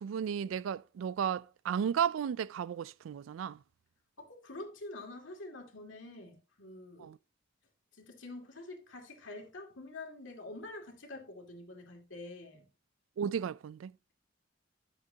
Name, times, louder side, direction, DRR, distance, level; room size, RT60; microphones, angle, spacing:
voice 1, 0.0-3.6 7.0-7.2 13.2-13.9, right 8 dB, 85° right, 0.3 m, -34 dB
voice 2, 4.2-7.1 7.9-12.7, left 2 dB, 70° left, 2.3 m, -47 dB
10.5 x 7.4 x 2.8 m
head